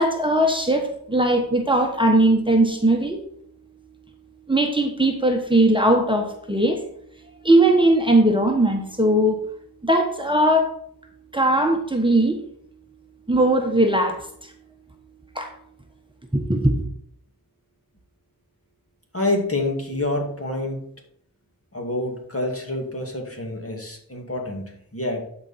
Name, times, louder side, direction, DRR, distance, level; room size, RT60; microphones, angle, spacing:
voice 1, 0.0-3.2 4.5-6.9 7.4-9.4 9.8-10.8 11.3-12.4 13.3-14.5 15.3-15.5 16.3-16.9, right 1 dB, 15° right, 3 dB, 1.2 m, -19 dB
voice 2, 19.1-20.8 21.7-25.3, left 2 dB, 40° left, 1 dB, 2.3 m, -27 dB
11.5 x 5.0 x 4.2 m, 0.66 s
wide cardioid pair, 40°, 36 cm